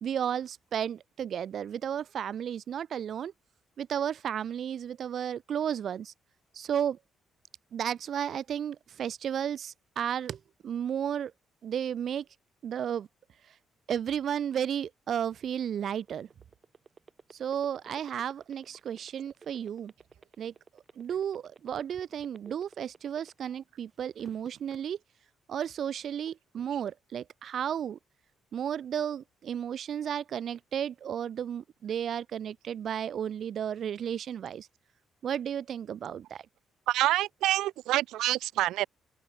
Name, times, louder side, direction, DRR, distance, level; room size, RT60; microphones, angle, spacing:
voice 1, 0.0-3.3 3.8-6.1 6.5-7.0 7.7-11.3 11.6-12.3 12.6-13.1 13.5-13.6 13.9-16.3 17.3-19.9 20.4-25.0 25.5-28.0 28.5-34.7 35.2-36.4, right 9 dB, 60° right, 0.4 m, -33 dB
sound 1, 15.4-23.6 24.0-24.8, right 5 dB, 35° right, 1.7 m, -53 dB
voice 2, 36.9-38.9, right 15 dB, 90° right, 1.1 m, -27 dB
open air
cardioid pair, 90°, 0 cm